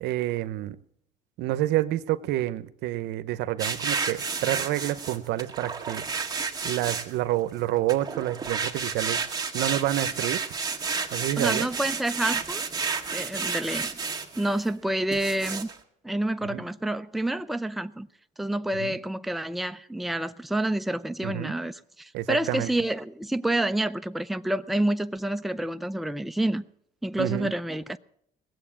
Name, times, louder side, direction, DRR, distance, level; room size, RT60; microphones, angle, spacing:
voice 1, 0.0-0.8 1.4-6.0 6.6-9.2 9.5-10.4 11.1-11.7 16.5-16.6 18.8-19.0 21.2-21.5 22.1-22.7 27.2-27.5, right 15 dB, 85° right, 0.7 m, -28 dB
sound 1, 3.6-7.4 7.9-14.7 15.1-15.7, right 5 dB, 20° right, 1.8 m, -31 dB
voice 2, 11.4-12.6 13.1-13.9 14.4-15.7 16.0-18.1 18.4-26.6 27.0-28.0, right 1 dB, ahead, 0.5 m, -28 dB
18.5 x 7.8 x 8.6 m
cardioid pair, 110°, 17 cm